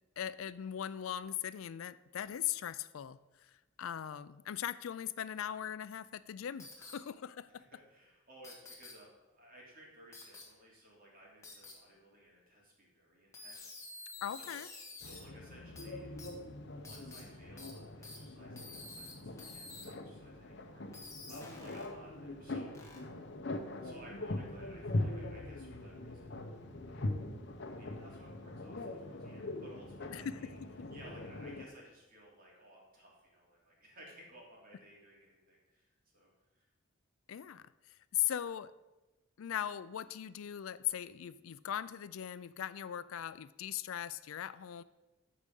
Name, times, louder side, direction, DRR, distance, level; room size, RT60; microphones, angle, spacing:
voice 1, 0.2-3.2 3.8-7.6 14.2-14.7 30.1-30.5 37.3-37.6 38.1-38.7 39.4-44.8, left 10 dB, 80° left, 16 dB, 0.4 m, -39 dB
sound 1, 6.6-6.9 8.4-8.9 10.1-10.4 11.4-11.7 13.3-15.2 15.8-15.9 16.2-16.3 16.8-17.2 17.6-17.7 18.0-18.2 18.6-19.1 19.4-19.8 20.9-21.9 22.7-23.0, left 3 dB, 15° left, 1.6 m, -49 dB
voice 2, 7.6-14.6 14.9-16.1 16.6-23.0 23.8-26.3 26.9-27.0 27.8-30.5 30.9-36.3 36.5-36.6, right 1 dB, 45° right, -3 dB, 2.9 m, -58 dB
sound 2, 15.0-31.7, left 2 dB, 55° left, 0.8 m, -42 dB
13.5 x 4.9 x 5.3 m, 1.1 s
head